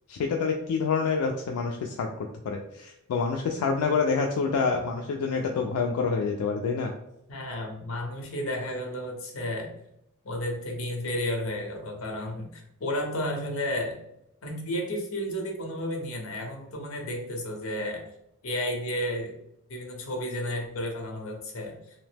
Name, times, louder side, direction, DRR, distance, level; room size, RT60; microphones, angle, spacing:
voice 1, 0.1-6.9, left 5 dB, 90° left, 2 dB, 0.3 m, -27 dB
voice 2, 7.3-9.7 10.2-14.0 14.4-18.1 18.4-19.3 19.7-21.8, left 1 dB, 70° left, 1 dB, 0.7 m, -32 dB
2.7 x 2.0 x 3.2 m, 0.80 s
head